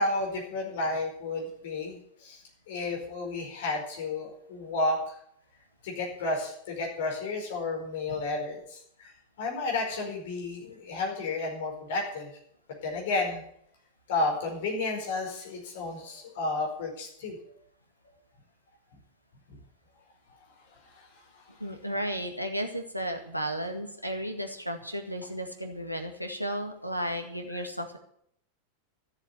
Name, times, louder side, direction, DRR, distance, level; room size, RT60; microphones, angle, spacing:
voice 1, 0.0-2.4 2.7-5.1 5.8-12.3 12.8-13.4 14.1-17.5 20.9-21.1 21.3-21.4, left 2 dB, 55° left, 1 dB, 4.9 m, -32 dB
voice 2, 21.6-28.0, equal, 90° left, 5 dB, 1.9 m, -34 dB
13.5 x 7.5 x 9.6 m, 0.69 s
figure-of-eight pair, 90°, 0 cm